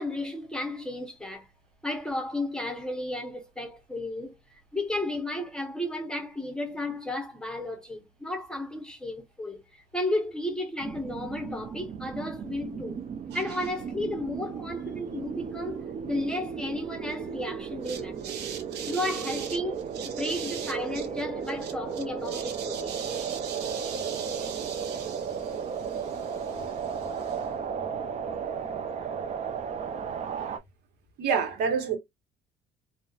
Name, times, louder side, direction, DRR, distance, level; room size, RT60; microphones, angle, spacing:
voice 1, 0.0-1.5 1.8-4.4 4.7-13.0 13.3-18.4 18.9-23.0, left 1 dB, 5° left, 0.7 m, -33 dB
sound 1, 10.8-30.6, right 6 dB, 40° right, 0.5 m, -35 dB
voice 2, 17.9-19.0 20.0-20.7 22.3-25.3 31.2-32.0, right 6 dB, 75° right, 0.9 m, -33 dB
2.7 x 2.0 x 2.3 m
cardioid pair, 110°, 17 cm